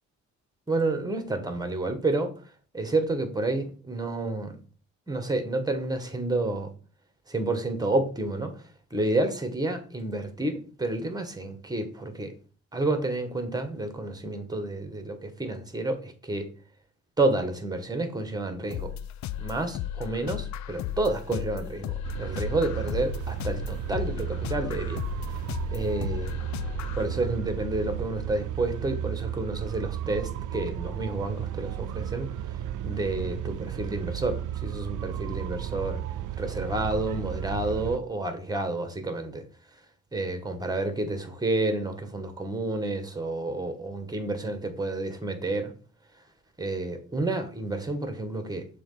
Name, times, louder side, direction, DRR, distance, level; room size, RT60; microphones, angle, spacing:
voice 1, 0.7-2.3 2.7-4.6 5.1-6.7 7.3-8.6 8.9-12.3 12.7-16.5 17.2-18.9 19.4-25.0 25.7-26.4 27.0-32.3 32.8-36.0 36.4-39.4 40.1-45.7 46.6-48.7, right 2 dB, 15° right, 1.7 m, -30 dB
sound 1, 18.7-27.1, left 11 dB, 65° left, 0.5 m, -35 dB
sound 2, 22.0-38.0, right 11 dB, 80° right, 0.6 m, -34 dB
6.9 x 3.4 x 5.7 m
cardioid pair, 90°, 30 cm